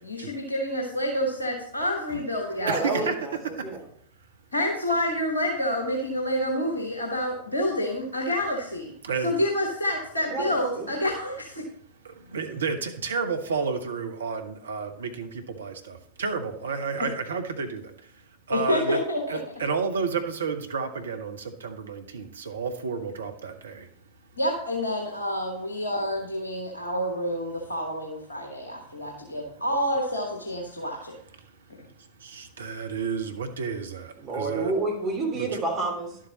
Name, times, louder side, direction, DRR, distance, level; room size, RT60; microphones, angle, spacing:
voice 1, 0.0-3.1 4.5-8.9 9.2-11.5 18.5-19.4 24.4-31.1, equal, 80° left, 0 dB, 1.3 m, -28 dB
voice 2, 2.1-3.1 3.6-3.7 9.0-9.4 12.0-17.9 18.5-19.0 19.3-23.8 32.2-34.7 35.3-35.5, right 5 dB, 70° right, 7 dB, 0.9 m, -31 dB
voice 3, 2.6-3.8 10.3-10.9 34.2-36.2, right 3 dB, 30° right, -1 dB, 2.9 m, -29 dB
11.0 x 7.4 x 3.0 m, 0.66 s
figure-of-eight pair, 90°, 0 cm